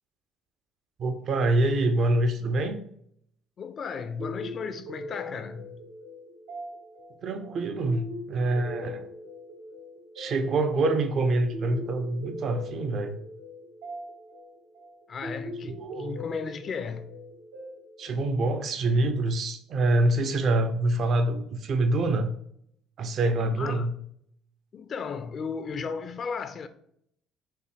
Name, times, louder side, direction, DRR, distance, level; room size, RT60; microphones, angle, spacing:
voice 1, 1.0-2.8 7.2-9.1 10.2-13.2 15.8-16.2 18.0-22.3 23.0-23.9, right 2 dB, 55° right, 0.6 m, -25 dB
voice 2, 3.6-5.8 15.1-17.2 23.6-23.9 24.7-26.7, left 5 dB, 45° left, 0.4 m, -35 dB
sound 1, 4.2-19.0, equal, 85° right, 1.0 m, -41 dB
5.6 x 2.2 x 3.2 m
supercardioid pair, 85°, 0 cm